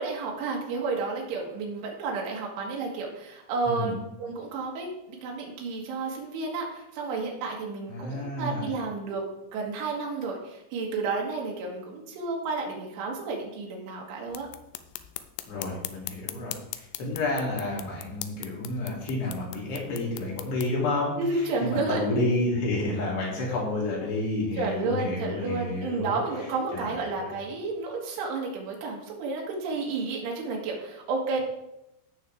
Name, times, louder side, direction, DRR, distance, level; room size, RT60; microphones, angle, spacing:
voice 1, 0.0-14.5 21.2-22.0 24.6-31.4, right 3 dB, 85° right, -1 dB, 4.3 m, -31 dB
voice 2, 3.7-4.0 7.9-8.7 15.5-26.2 26.7-27.4, left 2 dB, 65° left, -5 dB, 4.9 m, -30 dB
sound 1, 14.3-20.7, left 14 dB, 80° left, 2.6 m, -41 dB
15.5 x 6.7 x 3.6 m, 0.88 s
omnidirectional pair, 5.4 m